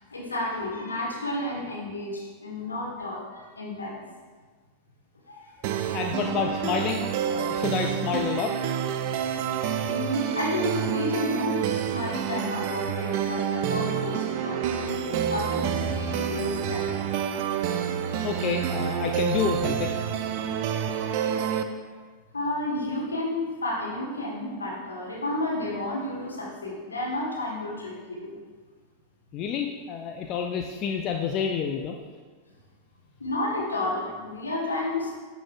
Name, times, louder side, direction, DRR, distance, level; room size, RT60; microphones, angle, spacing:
voice 1, 0.1-4.0 5.3-5.5 9.8-17.0 21.8-21.9 22.3-28.3 33.2-35.1, left 1 dB, 75° left, -3 dB, 1.3 m, -31 dB
sound 1, 5.6-21.6, right 8 dB, 45° right, 0.3 m, -28 dB
voice 2, 5.9-8.6 18.2-19.9 29.3-32.0, left 7 dB, 35° left, 3 dB, 0.4 m, -29 dB
10.5 x 4.0 x 2.4 m, 1.4 s
figure-of-eight pair, 90°, 0 cm